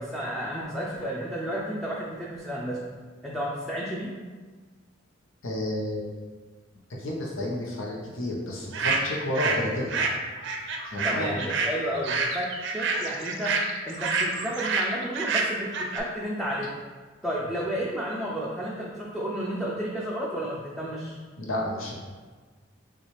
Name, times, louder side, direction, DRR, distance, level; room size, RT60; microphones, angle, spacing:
voice 1, 0.0-2.9 3.2-4.1 11.0-13.6 13.8-16.7 17.2-21.2, equal, ahead, -5 dB, 0.4 m, -32 dB
voice 2, 5.4-6.2 7.0-9.9 10.8-11.4 21.4-21.9, left 1 dB, 90° left, -3 dB, 0.9 m, -31 dB
sound 1, 8.7-9.6 9.9-16.0, right 4 dB, 65° right, 0.5 m, -28 dB
5.9 x 2.4 x 3.1 m, 1.4 s
head